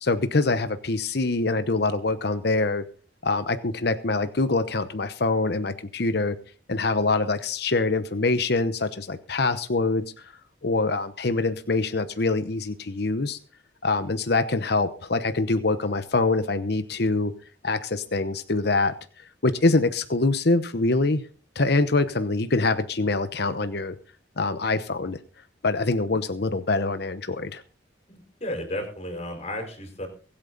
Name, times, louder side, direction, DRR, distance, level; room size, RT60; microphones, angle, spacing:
voice 1, 0.0-2.8 3.2-6.4 6.7-10.3 10.6-13.4 13.8-17.3 17.6-21.2 21.5-23.9 24.4-25.2 25.6-27.6, left 3 dB, 60° left, 11 dB, 0.9 m, -24 dB
voice 2, 28.1-30.1, left 1 dB, 35° left, 4 dB, 5.3 m, -33 dB
23.5 x 8.8 x 4.0 m, 0.38 s
head